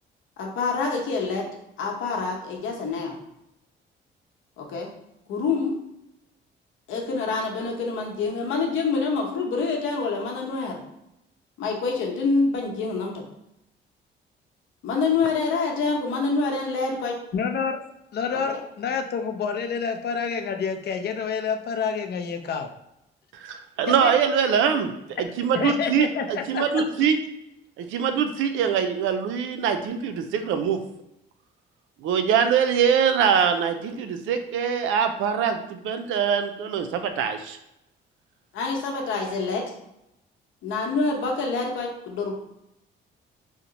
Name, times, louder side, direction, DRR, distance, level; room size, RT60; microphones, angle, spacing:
voice 1, 0.4-1.5 1.8-3.2 4.6-4.9 5.3-5.7 6.9-10.8 11.6-13.2 14.8-17.2 18.3-18.4 38.5-39.6 40.6-42.3, left 4 dB, 80° left, 0 dB, 0.9 m, -26 dB
voice 2, 17.3-17.8 18.1-22.7 23.9-24.1 25.5-26.9, left 6 dB, 55° left, 6 dB, 0.5 m, -28 dB
voice 3, 23.3-27.2 27.8-30.8 32.0-37.6, right 7 dB, 90° right, 8 dB, 0.4 m, -23 dB
2.8 x 2.1 x 3.9 m, 0.84 s
cardioid pair, 90°, 20 cm